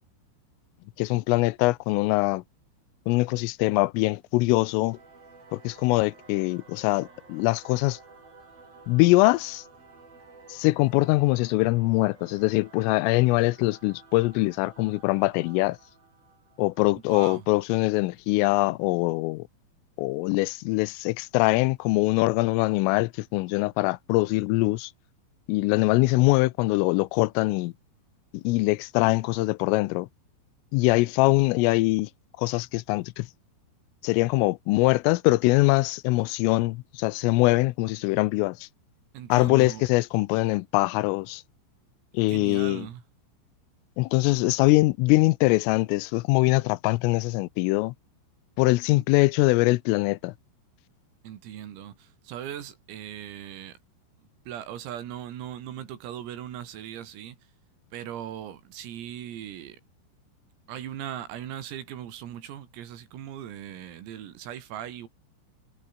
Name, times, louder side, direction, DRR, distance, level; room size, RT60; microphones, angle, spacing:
voice 1, 1.0-2.4 3.1-5.0 5.5-8.0 8.9-9.6 10.5-15.8 16.6-19.4 20.0-24.9 25.5-27.7 28.3-30.1 30.7-32.1 32.4-33.3 34.0-38.6 39.3-41.4 42.1-42.9 44.0-47.9 48.6-50.3, left 22 dB, 85° left, 3.3 m, -23 dB
Singing / Musical instrument, 4.8-17.7, right 4 dB, 45° right, 9.3 m, -53 dB
voice 2, 17.1-17.5 39.1-39.9 42.3-43.0 48.9-49.0 51.2-53.8 54.2-57.4 57.9-59.8 60.7-65.1, right 11 dB, 85° right, 5.4 m, -39 dB
omnidirectional pair, 5.9 m